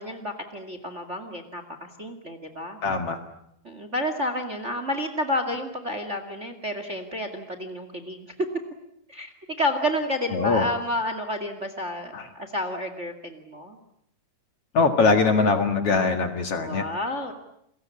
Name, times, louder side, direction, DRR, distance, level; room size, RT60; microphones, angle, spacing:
voice 1, 0.0-2.8 3.6-8.3 9.1-13.8 16.6-17.3, left 1 dB, 25° right, 9 dB, 2.0 m, -30 dB
voice 2, 2.8-3.2 10.3-10.7 12.1-12.2 14.7-16.9, left 4 dB, 50° left, 7 dB, 2.5 m, -22 dB
29.5 x 22.0 x 8.6 m, 0.74 s
omnidirectional pair, 3.8 m